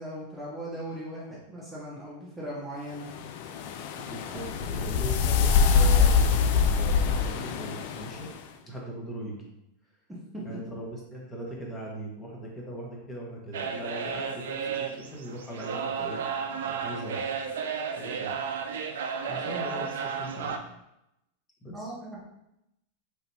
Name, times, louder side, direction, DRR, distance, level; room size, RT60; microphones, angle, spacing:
voice 1, 0.0-3.1 10.3-10.4 21.7-22.2, right 1 dB, 5° right, -7 dB, 0.9 m, -38 dB
sound 1, 3.0-8.4, left 5 dB, 60° left, 0.3 m, -24 dB
voice 2, 3.9-8.3 8.7-9.5 10.4-16.2 16.6-17.3 18.0-18.4 18.8-20.7 21.6-21.9, right 1 dB, 20° left, -3 dB, 1.2 m, -40 dB
sound 2, 13.5-20.6, right 6 dB, 75° right, 0.3 m, -33 dB
3.4 x 2.7 x 2.8 m, 0.85 s
hypercardioid pair, 100°, 0 cm